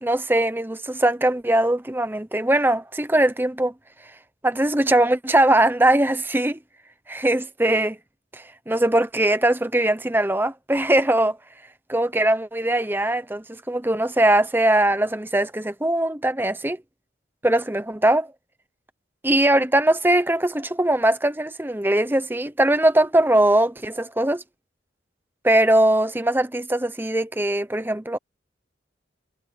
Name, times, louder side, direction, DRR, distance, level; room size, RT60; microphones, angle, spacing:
voice 1, 0.0-3.7 4.4-6.6 7.1-8.0 8.3-11.4 11.9-16.8 17.4-18.3 19.2-24.4 25.4-28.2, right 1 dB, 10° right, 0.9 m, -21 dB
head